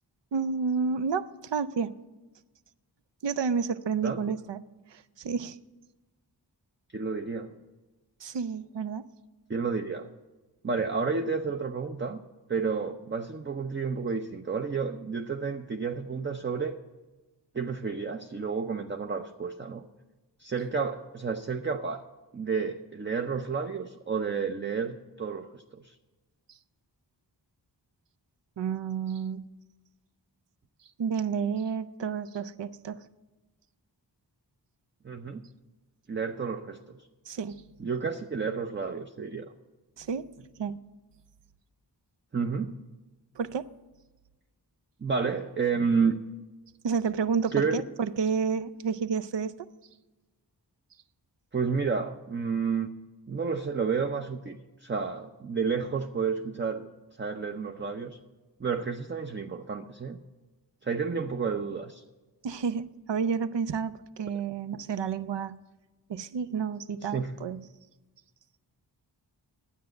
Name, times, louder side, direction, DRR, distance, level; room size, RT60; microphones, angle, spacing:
voice 1, 0.3-1.9 3.2-4.6 4.9-5.6 8.2-9.1 28.6-29.5 31.0-33.0 37.3-37.6 40.0-40.3 40.6-40.8 43.4-43.7 46.8-49.5 62.4-65.6 66.1-67.6, right 6 dB, 75° right, 13 dB, 0.6 m, -30 dB
voice 2, 6.9-7.5 9.5-10.1 10.6-12.2 12.5-16.8 17.5-19.8 20.4-22.0 22.3-25.9 35.0-35.4 36.1-37.0 37.8-39.5 42.3-42.7 45.0-46.1 47.5-47.8 51.5-52.9 53.3-56.9 57.2-58.2 58.6-60.2 60.8-62.0 67.1-67.4, right 5 dB, 25° right, 5 dB, 0.6 m, -30 dB
10.0 x 8.2 x 7.6 m, 1.2 s
wide cardioid pair, 60°, 43 cm